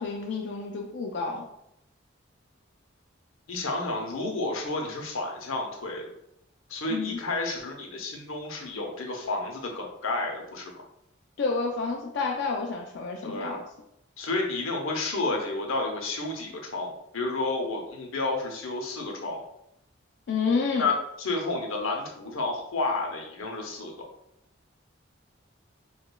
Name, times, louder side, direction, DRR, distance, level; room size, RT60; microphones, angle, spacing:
voice 1, 0.0-1.4 6.9-7.2 11.4-13.6 20.3-20.9, left 4 dB, 60° left, 0 dB, 0.3 m, -29 dB
voice 2, 3.5-6.1 6.7-10.7 13.2-13.6 14.2-19.4 20.8-23.9, left 2 dB, 90° left, 1 dB, 0.7 m, -31 dB
4.8 x 2.2 x 2.2 m, 0.79 s
head